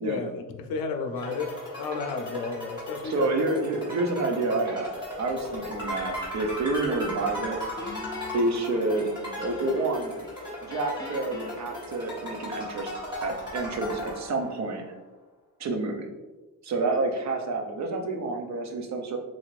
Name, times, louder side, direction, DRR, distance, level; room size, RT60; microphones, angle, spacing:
voice 1, 0.0-3.3, left 4 dB, 90° left, 5 dB, 0.5 m, -32 dB
sound 1, 1.2-14.8, left 1 dB, 10° right, 1.3 m, -37 dB
voice 2, 3.0-7.6 8.3-9.1 9.4-10.1 10.6-12.9 13.2-14.9 15.6-16.1 16.6-19.2, right 2 dB, 50° right, 3 dB, 0.6 m, -28 dB
Guitar, 7.8-9.9 10.2-12.5, left 3 dB, 10° left, 0.4 m, -42 dB
3.8 x 2.5 x 3.1 m, 1.2 s
wide cardioid pair, 165°, 35 cm